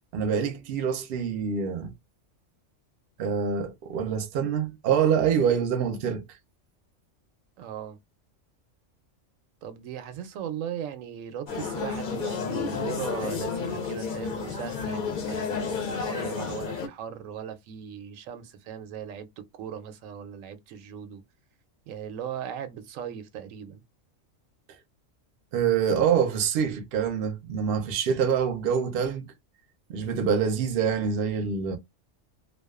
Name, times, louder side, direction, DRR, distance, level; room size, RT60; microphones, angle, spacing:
voice 1, 0.1-1.9 3.2-6.2 25.5-29.3 29.9-31.8, right 7 dB, 60° right, 0.7 m, -25 dB
voice 2, 7.6-8.0 9.6-21.2 21.9-23.8, right 9 dB, 90° right, 1.0 m, -38 dB
sound 1, 11.5-16.9, left 5 dB, 50° left, 0.6 m, -31 dB
2.4 x 2.3 x 2.3 m
omnidirectional pair, 1.3 m